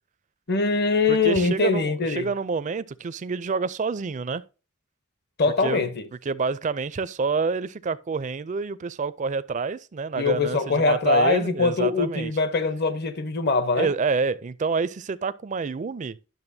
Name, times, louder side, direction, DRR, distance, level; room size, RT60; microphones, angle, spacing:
voice 1, 0.5-2.3 5.4-6.0 10.1-13.9, left 3 dB, 50° left, 0.9 m, -22 dB
voice 2, 1.1-4.4 5.6-5.9 6.3-12.3 13.7-16.2, right 4 dB, 35° right, 0.4 m, -28 dB
10.5 x 6.4 x 2.7 m
head